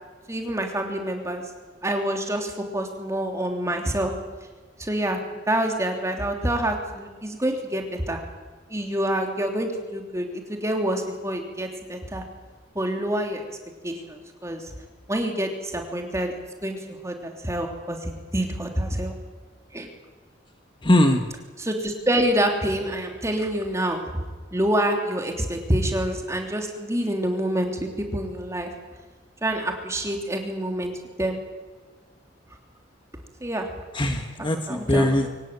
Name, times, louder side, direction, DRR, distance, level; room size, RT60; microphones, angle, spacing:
voice 1, 0.3-1.4 1.8-4.1 4.8-8.2 8.7-12.2 12.7-13.4 13.8-14.6 15.1-19.2 19.7-19.9 21.6-24.2 24.5-28.7 29.4-31.4 33.4-33.7 34.4-35.2, right 1 dB, 15° right, 3 dB, 3.4 m, -27 dB
voice 2, 20.8-21.2 33.9-35.3, left 1 dB, 25° left, 6 dB, 1.5 m, -21 dB
24.5 x 17.0 x 9.7 m, 1.3 s
head